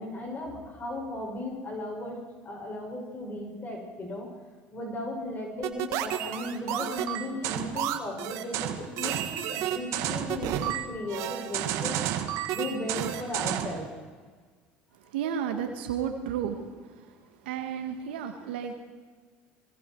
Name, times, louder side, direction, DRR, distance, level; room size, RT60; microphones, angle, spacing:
voice 1, 0.0-2.2 2.4-4.3 4.7-12.0 12.5-13.9, left 1 dB, 35° left, 0 dB, 6.8 m, -36 dB
sound 1, 5.6-13.8, right 11 dB, 70° right, 1.9 m, -31 dB
voice 2, 15.0-16.6 16.8-17.1 17.4-18.7, right 8 dB, 90° right, 5 dB, 1.7 m, -32 dB
26.5 x 22.0 x 4.7 m, 1.5 s
supercardioid pair, 80°, 6 cm